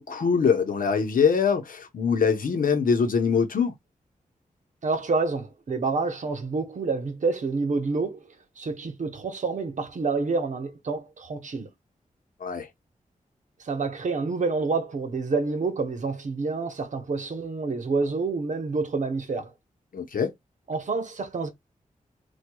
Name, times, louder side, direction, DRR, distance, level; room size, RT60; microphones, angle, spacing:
voice 1, 0.0-3.7 12.4-12.7 19.9-20.3, left 6 dB, 75° left, 0.8 m, -23 dB
voice 2, 4.8-8.2 8.6-11.7 13.6-19.5 20.7-21.5, right 4 dB, 60° right, 0.9 m, -28 dB
4.5 x 2.3 x 2.2 m
wide cardioid pair, 110°, 14 cm